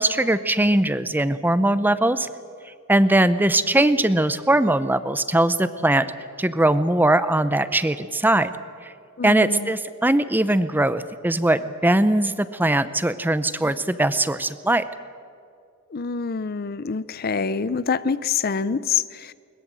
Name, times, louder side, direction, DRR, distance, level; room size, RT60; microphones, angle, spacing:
voice 1, 0.0-2.3 2.9-6.1 6.4-8.5 9.2-14.8, right 1 dB, 10° right, 13 dB, 0.6 m, -20 dB
voice 2, 9.2-9.7 15.9-19.3, left 5 dB, 45° left, 17 dB, 0.5 m, -26 dB
21.5 x 21.0 x 7.6 m, 2.3 s
head